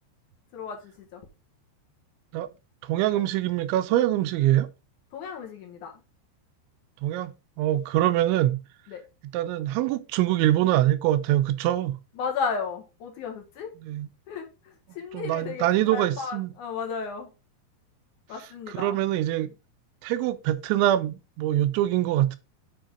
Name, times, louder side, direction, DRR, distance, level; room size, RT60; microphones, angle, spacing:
voice 1, 0.5-1.2 3.1-3.3 5.1-6.0 8.9-9.0 12.2-13.8 14.3-17.3 18.3-19.0, left 5 dB, 60° left, 2.3 m, -34 dB
voice 2, 2.8-4.7 7.0-8.6 9.3-12.0 13.9-14.1 15.1-16.5 18.7-19.5 20.0-22.4, right 13 dB, 85° right, 3.1 m, -24 dB
9.0 x 5.2 x 3.7 m
omnidirectional pair, 5.2 m